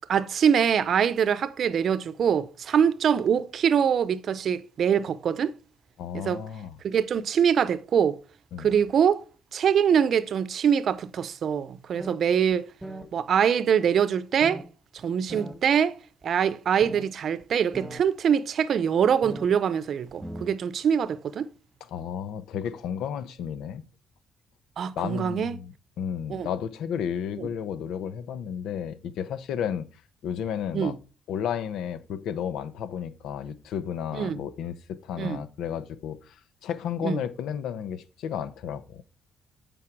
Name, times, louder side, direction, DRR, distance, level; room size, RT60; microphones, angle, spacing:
voice 1, 0.1-5.5 6.1-6.4 6.8-8.2 8.6-9.2 9.5-12.6 13.1-14.6 15.0-15.9 16.2-21.5 24.8-25.6 26.3-26.5 27.4-27.5 30.7-30.9 34.1-34.4 35.2-35.4 37.0-37.2, right 8 dB, 60° right, 0.7 m, -24 dB
voice 2, 6.0-6.8 8.5-8.7 21.9-23.8 25.0-29.8 30.2-30.9 31.3-36.2 36.6-39.0, left 8 dB, 85° left, 0.8 m, -32 dB
sound 1, 12.0-12.2 12.5-12.6 12.8-13.1 14.4-14.6 15.3-15.6 16.2-16.3 16.8-17.0 17.4-17.5 17.7-18.0 19.2-19.5 20.1-20.5, right 1 dB, 10° right, 1.5 m, -38 dB
8.6 x 5.4 x 4.7 m
cardioid pair, 90°, 0 cm